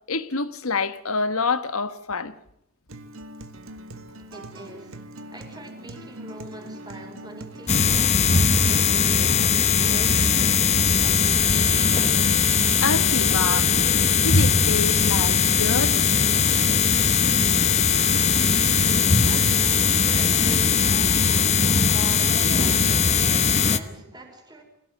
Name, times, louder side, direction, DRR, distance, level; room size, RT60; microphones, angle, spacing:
voice 1, 0.1-2.3 12.8-13.7 14.1-16.0, left 4 dB, 75° left, 1.5 m, -27 dB
Acoustic guitar, 2.9-10.9, right 1 dB, 65° right, 1.8 m, -41 dB
voice 2, 4.1-12.3 19.2-24.6, right 1 dB, 20° right, 5.1 m, -43 dB
sound 1, 7.7-23.8, left 6 dB, 30° left, 1.0 m, -20 dB
24.5 x 17.0 x 9.4 m
head